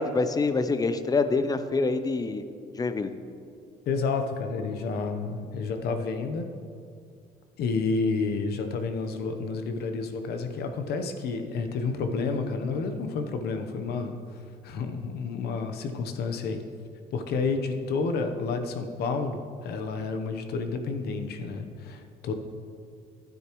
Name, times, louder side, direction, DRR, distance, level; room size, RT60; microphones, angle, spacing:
voice 1, 0.0-2.4 2.7-3.2, left 3 dB, 20° left, 10 dB, 0.6 m, -26 dB
voice 2, 3.9-6.5 7.6-14.4 14.6-16.6 17.1-22.3, left 4 dB, 70° left, 7 dB, 0.9 m, -30 dB
12.0 x 9.3 x 3.1 m, 2.4 s
cardioid pair, 110°, 17 cm